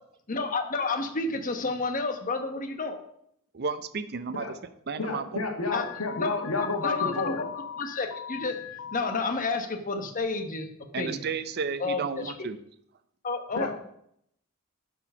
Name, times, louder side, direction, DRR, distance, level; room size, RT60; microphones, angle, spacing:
voice 1, 0.3-3.0 5.7-5.8 6.2-7.4 7.8-8.6 8.9-10.7 11.0-11.2 11.8-12.3 13.2-13.7, left 3 dB, 40° left, 6 dB, 1.1 m, -30 dB
voice 2, 3.5-4.5 4.9-5.2 10.9-12.6, right 5 dB, 50° right, 13 dB, 0.6 m, -32 dB
voice 3, 5.0-7.4 13.5-13.7, left 3 dB, 80° left, 3 dB, 1.7 m, -30 dB
Alarm, 5.7-9.2, left 9 dB, 60° left, 0.4 m, -40 dB
11.0 x 4.6 x 5.6 m, 0.73 s
head